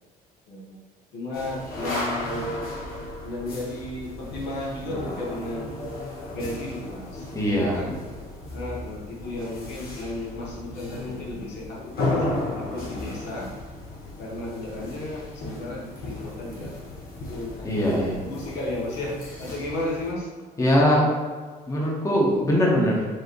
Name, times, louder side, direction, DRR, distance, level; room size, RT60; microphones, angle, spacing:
voice 1, 0.5-0.8 1.1-2.5 3.2-5.8 6.3-7.9 8.5-11.8 12.1-13.5 14.2-16.8 17.1-20.3 20.9-21.1, left 2 dB, 80° left, -4 dB, 1.2 m, -34 dB
Room Tone - small warehouse with minor construction going on, 1.3-20.1, left 2 dB, 60° left, 1.1 m, -34 dB
voice 2, 7.3-7.8 17.6-18.2 20.6-21.1 21.7-23.1, equal, 20° left, -3 dB, 1.0 m, -21 dB
4.7 x 2.8 x 3.1 m, 1.5 s
cardioid pair, 110°, 17 cm